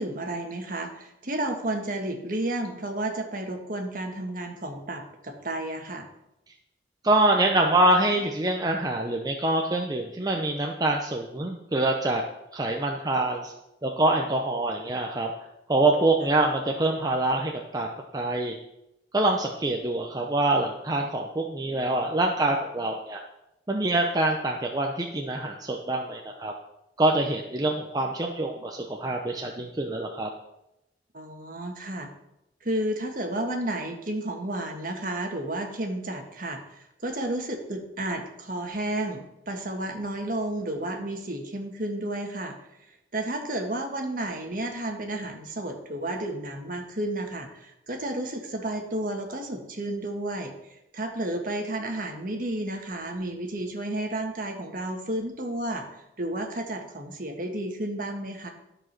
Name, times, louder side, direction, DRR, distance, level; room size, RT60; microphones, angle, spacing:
voice 1, 0.0-6.1 31.1-32.1 32.6-42.5 43.1-50.5 50.9-55.8 56.2-58.5, right 1 dB, 50° right, 3 dB, 1.6 m, -32 dB
voice 2, 7.0-12.2 12.5-13.5 13.8-15.3 15.7-17.9 18.1-18.6 19.1-23.2 23.7-26.5 27.0-30.3, right 2 dB, 20° right, 1 dB, 0.7 m, -25 dB
12.5 x 5.0 x 6.0 m, 0.88 s
head